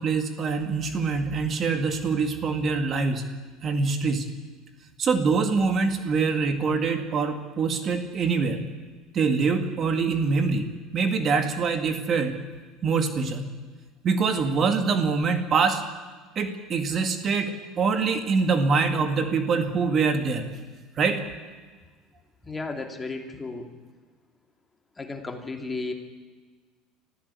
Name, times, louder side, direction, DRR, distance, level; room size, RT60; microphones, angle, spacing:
voice 1, 0.0-3.3 3.6-4.3 5.0-8.6 9.1-12.4 12.8-13.5 14.0-15.8 16.4-20.5 21.0-21.2, right 4 dB, 35° right, 7 dB, 2.1 m, -24 dB
voice 2, 22.4-23.7 25.0-25.9, left 3 dB, 15° left, 4 dB, 2.7 m, -34 dB
24.5 x 14.5 x 8.5 m, 1.4 s
cardioid pair, 125°, 0 cm